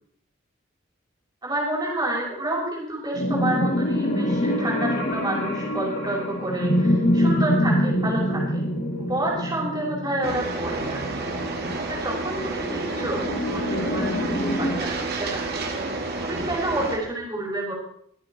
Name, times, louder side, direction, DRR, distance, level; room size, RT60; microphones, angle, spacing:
voice 1, 1.4-8.6 9.0-11.0 11.9-15.4 16.2-17.7, right 1 dB, 20° right, -4 dB, 5.5 m, -29 dB
sound 1, 3.1-14.8, equal, 60° left, 6.4 m, -25 dB
sound 2, 10.2-17.0, right 3 dB, 55° right, 2.5 m, -30 dB
24.0 x 8.5 x 4.3 m, 0.70 s
head